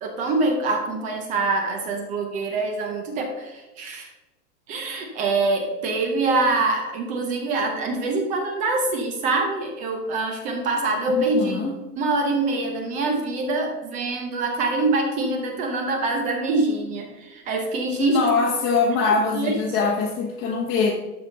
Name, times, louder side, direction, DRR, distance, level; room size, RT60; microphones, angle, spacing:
voice 1, 0.0-4.1 4.7-11.6 12.0-18.2 19.3-19.5, right 3 dB, 15° right, 3 dB, 0.6 m, -24 dB
voice 2, 11.1-11.8 17.9-20.9, left 4 dB, 20° left, -3 dB, 1.0 m, -23 dB
12.0 x 4.3 x 5.2 m, 1.1 s
supercardioid pair, 155°, 47 cm